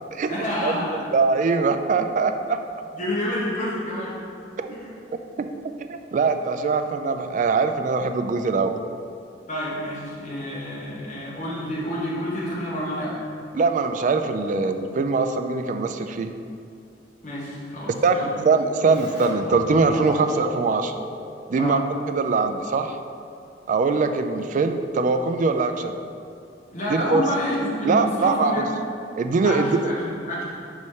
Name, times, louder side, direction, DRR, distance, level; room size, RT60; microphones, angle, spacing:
voice 1, 0.3-1.0 3.0-4.2 4.7-4.9 9.5-13.2 17.2-18.4 21.5-21.8 26.7-28.7 29.4-30.4, equal, 45° left, -7 dB, 1.3 m, -28 dB
voice 2, 1.1-2.6 4.6-4.7 5.4-5.5 5.9-8.8 13.5-16.3 18.0-20.9 21.5-21.8 22.1-23.0 23.7-26.0 26.9-27.2 27.8-28.6 29.2-29.8, right 4 dB, 45° right, 8 dB, 0.3 m, -22 dB
Keyboard (musical), 18.9-22.3, left 1 dB, 70° left, 1.5 m, -37 dB
4.8 x 4.2 x 5.5 m, 2.5 s
head